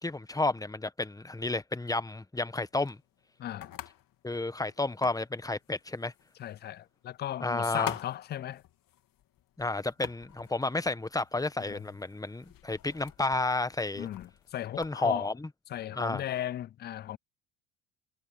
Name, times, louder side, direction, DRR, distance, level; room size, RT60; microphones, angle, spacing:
voice 1, 0.0-3.0 4.2-6.1 7.4-7.9 9.6-14.1 14.8-15.5 15.9-16.2, left 2 dB, 10° left, 1.3 m, -31 dB
sound 1, 2.5-15.0, left 13 dB, 50° left, 3.1 m, -48 dB
voice 2, 3.4-3.8 6.4-8.6 11.7-11.8 13.9-15.3 15.7-17.2, left 12 dB, 25° left, 0.3 m, -36 dB
hypercardioid pair, 75°, 43 cm